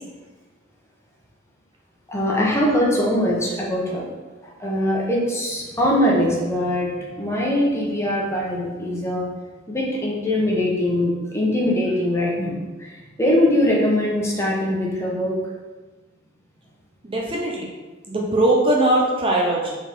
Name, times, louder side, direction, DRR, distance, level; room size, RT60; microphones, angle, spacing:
voice 1, 2.1-4.1 4.4-9.3 9.7-15.3, left 1 dB, 15° left, -4 dB, 1.2 m, -22 dB
voice 2, 17.0-17.7 18.1-19.7, right 1 dB, 25° right, -2 dB, 0.7 m, -20 dB
4.8 x 4.0 x 5.3 m, 1.3 s
head